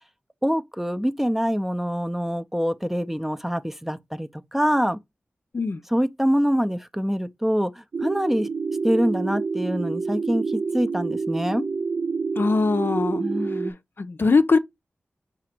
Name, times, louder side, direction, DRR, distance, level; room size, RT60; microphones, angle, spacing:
voice 1, 0.4-5.0 5.9-7.7 8.0-8.5 8.8-10.4 10.7-11.6 13.2-13.7, equal, 5° right, 0.5 m, -24 dB
sound 1, 7.9-13.7, right 4 dB, 65° right, 0.3 m, -28 dB
voice 2, 12.4-13.2 14.0-14.6, left 4 dB, 55° left, 0.5 m, -21 dB
4.9 x 2.5 x 4.3 m
cardioid pair, 45°, 4 cm